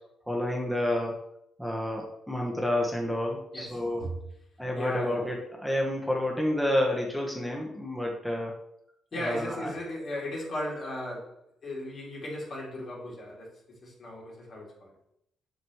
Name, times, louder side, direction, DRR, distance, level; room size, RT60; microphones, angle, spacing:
voice 1, 0.3-1.2 1.6-4.1 4.6-8.5 9.2-9.7, left 1 dB, ahead, -1 dB, 1.2 m, -29 dB
voice 2, 3.5-4.1 4.7-5.3 9.1-13.5 13.8-14.9, left 1 dB, 55° left, -3 dB, 3.1 m, -37 dB
7.7 x 6.1 x 3.1 m, 0.76 s
cardioid pair, 90°, 0 cm